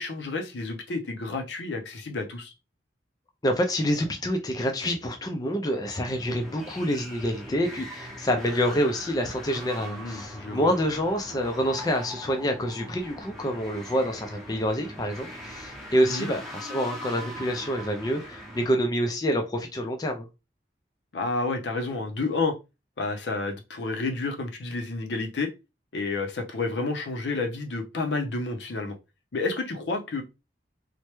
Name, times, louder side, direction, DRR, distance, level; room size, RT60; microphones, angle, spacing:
voice 1, 0.0-2.5 9.8-10.7 16.1-16.3 21.1-22.6 23.0-25.5 25.9-29.0 29.3-30.2, left 3 dB, 75° left, 0.6 m, -30 dB
voice 2, 3.4-20.3, equal, 20° left, 0.3 m, -27 dB
sound 1, 5.8-18.7, equal, ahead, 0.7 m, -41 dB
3.2 x 2.1 x 3.0 m
head